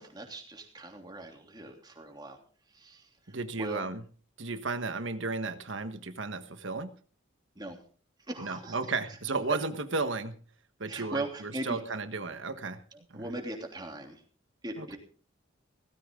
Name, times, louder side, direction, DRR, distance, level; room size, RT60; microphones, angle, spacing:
voice 1, 0.0-2.4 2.7-3.8 7.5-7.8 8.3-8.8 9.4-9.6 10.9-11.8 12.9-14.2 14.6-15.0, right 1 dB, 20° right, 2 dB, 3.1 m, -39 dB
voice 2, 3.3-4.0 4.4-6.9 8.4-10.4 10.8-12.8 13.1-13.2 14.8-15.0, right 3 dB, 70° right, 10 dB, 1.4 m, -34 dB
17.5 x 15.0 x 3.8 m, 0.40 s
head